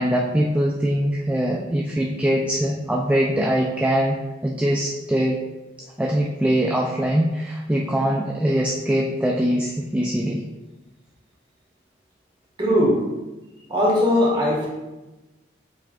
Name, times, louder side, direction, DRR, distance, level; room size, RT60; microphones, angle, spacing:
voice 1, 0.0-4.2 4.4-5.4 6.0-10.4, equal, 5° right, -2 dB, 0.4 m, -22 dB
voice 2, 12.6-13.0 13.7-14.7, left 1 dB, 25° right, -3 dB, 1.7 m, -19 dB
7.3 x 5.7 x 2.5 m, 1.1 s
head